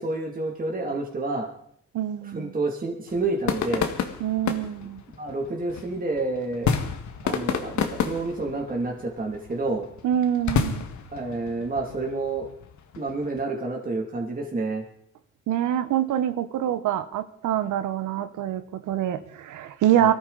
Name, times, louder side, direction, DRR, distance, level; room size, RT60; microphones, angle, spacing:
voice 1, 0.0-1.5 2.3-3.9 5.1-6.7 7.2-9.9 11.1-12.5 13.0-14.8 20.0-20.1, right 3 dB, 30° right, 0 dB, 2.6 m, -29 dB
voice 2, 1.9-2.5 4.2-5.0 10.0-10.9 15.5-20.1, right 11 dB, 80° right, 11 dB, 1.1 m, -25 dB
sound 1, 3.1-13.4, left 7 dB, 70° left, 1.8 m, -31 dB
19.5 x 13.5 x 4.1 m, 0.67 s
cardioid pair, 90°, 30 cm